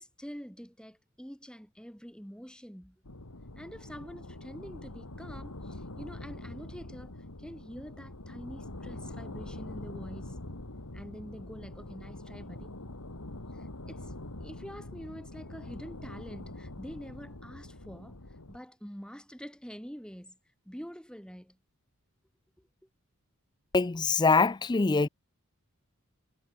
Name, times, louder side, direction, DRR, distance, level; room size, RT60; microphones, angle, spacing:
voice 1, 0.0-3.0 3.6-7.1 7.4-10.4 10.9-12.8 13.5-14.1 14.4-18.2 18.5-20.4 20.7-21.6 22.6-22.7, equal, 5° left, 4.0 m, -46 dB
sound 1, 3.0-18.6, left 1 dB, 85° left, 2.6 m, -44 dB
voice 2, 23.7-25.1, left 4 dB, 20° left, 0.4 m, -24 dB
head